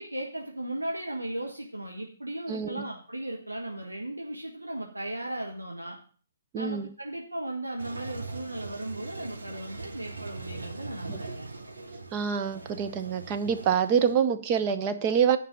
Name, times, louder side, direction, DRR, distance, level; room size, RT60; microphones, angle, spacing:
voice 1, 0.0-6.0 6.5-11.5, right 1 dB, 85° right, 0 dB, 1.4 m, -36 dB
voice 2, 2.5-2.8 6.5-6.9 11.1-11.4 12.1-15.4, right 7 dB, 25° right, 7 dB, 0.8 m, -26 dB
Toilet flush, 7.8-14.1, right 3 dB, 70° right, 2.4 m, -41 dB
9.6 x 5.4 x 6.5 m, 0.43 s
figure-of-eight pair, 130°, 0 cm